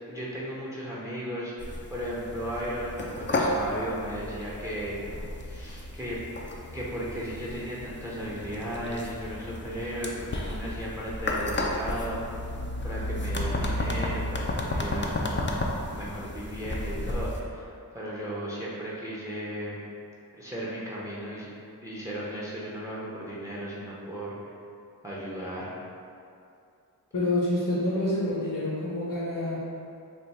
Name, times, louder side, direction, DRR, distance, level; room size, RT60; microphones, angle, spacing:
voice 1, 0.1-4.9 5.4-6.2 6.7-12.2 12.8-15.7 15.9-19.8 20.3-21.5 21.8-24.5 25.0-25.7, equal, 10° right, -6 dB, 0.6 m, -35 dB
sound 1, 1.6-17.4, left 1 dB, 30° left, 0.4 m, -33 dB
voice 2, 27.1-29.6, left 1 dB, 60° left, -7 dB, 0.9 m, -27 dB
3.4 x 2.5 x 4.1 m, 2.5 s
wide cardioid pair, 50°, 37 cm